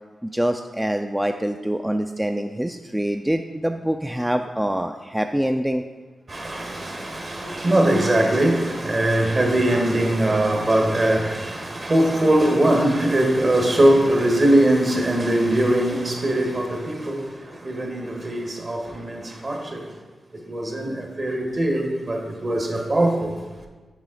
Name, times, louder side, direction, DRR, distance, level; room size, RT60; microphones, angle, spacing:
voice 1, 0.2-5.8, equal, 10° right, 0.3 m, -25 dB
voice 2, 6.3-19.9 20.3-23.4, right 1 dB, 45° right, 1.3 m, -21 dB
7.2 x 4.9 x 3.8 m
supercardioid pair, 45°, 0 cm